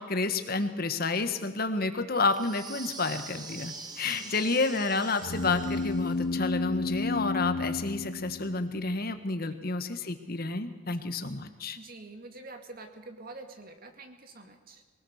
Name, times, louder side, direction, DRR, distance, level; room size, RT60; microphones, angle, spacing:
voice 1, 0.0-11.8, left 3 dB, 50° left, 9 dB, 1.6 m, -30 dB
sound 1, 2.3-6.3, right 4 dB, 20° right, 1.4 m, -44 dB
voice 2, 3.8-4.6 9.6-9.7 10.9-11.0 11.7-14.8, right 2 dB, 45° right, 5 dB, 2.3 m, -47 dB
sound 2, 5.2-8.9, left 3 dB, 70° left, 1.1 m, -32 dB
23.5 x 18.5 x 6.6 m, 1.4 s
head